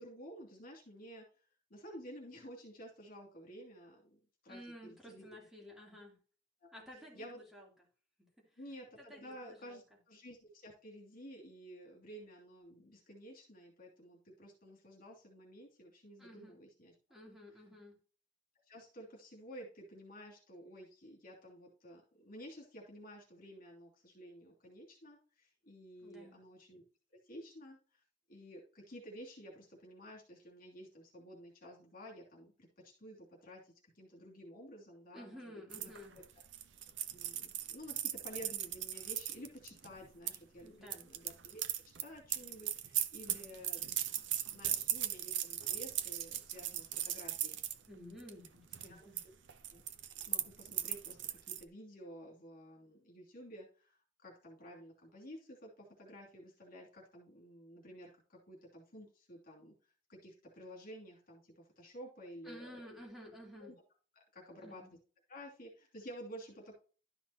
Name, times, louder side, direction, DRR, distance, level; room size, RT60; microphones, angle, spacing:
voice 1, 0.0-5.3 6.6-6.7 7.1-7.4 8.6-16.9 18.7-26.8 27.2-28.0 28.3-36.2 37.1-43.9 44.5-47.6 48.9-49.1 49.7-49.8 50.2-59.7 60.1-62.8 63.6-63.7 64.3-65.0 65.3-66.8, equal, 50° left, -2 dB, 2.9 m, -52 dB
voice 2, 4.5-6.2 6.7-7.7 8.4-8.5 9.0-9.8 16.2-16.5 17.1-18.0 26.0-26.4 35.1-36.2 40.6-41.0 47.9-49.2 62.4-63.7 64.6-64.9, equal, ahead, -3 dB, 3.2 m, -53 dB
sound 1, 35.7-40.4 40.9-47.8 48.2-48.5 48.7-49.2 49.5-51.6, right 11 dB, 80° right, 0.7 m, -38 dB
12.0 x 5.9 x 2.9 m, 0.38 s
head